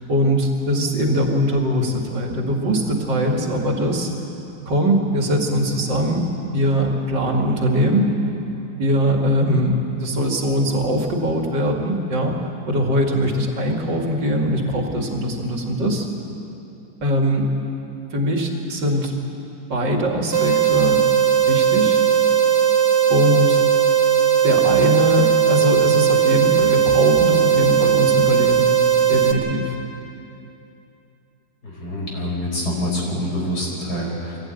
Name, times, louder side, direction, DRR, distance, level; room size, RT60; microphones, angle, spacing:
voice 1, 0.1-4.1 4.7-8.1 8.8-12.4 12.7-16.1 17.0-17.5 18.1-19.2 19.7-21.0 21.5-22.0 23.1-23.6 24.4-28.7 29.1-29.8, equal, 75° right, 1 dB, 3.0 m, -21 dB
sound 1, 20.3-29.3, right 9 dB, 35° right, 1.6 m, -17 dB
voice 2, 31.6-34.5, left 1 dB, 55° left, -2 dB, 5.2 m, -26 dB
23.0 x 16.5 x 9.3 m, 2.9 s
omnidirectional pair, 2.0 m